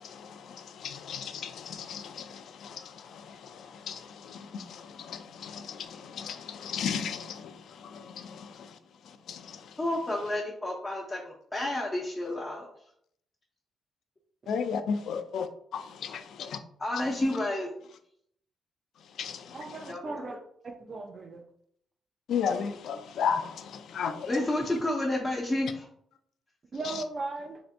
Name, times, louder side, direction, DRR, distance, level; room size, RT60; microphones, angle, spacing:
voice 1, 0.0-8.8 9.1-9.8 14.5-15.5 15.7-16.6 19.2-19.6 22.3-24.3 26.8-27.0, left 6 dB, 75° left, 0.3 m, -35 dB
voice 2, 9.8-12.7 16.8-17.7 19.9-20.1 24.3-25.9, left 1 dB, 20° left, 0.6 m, -30 dB
voice 3, 19.5-20.4 20.6-21.4 26.7-27.6, right 3 dB, 40° right, 0.4 m, -37 dB
3.2 x 2.6 x 2.5 m
cardioid pair, 95°, 0 cm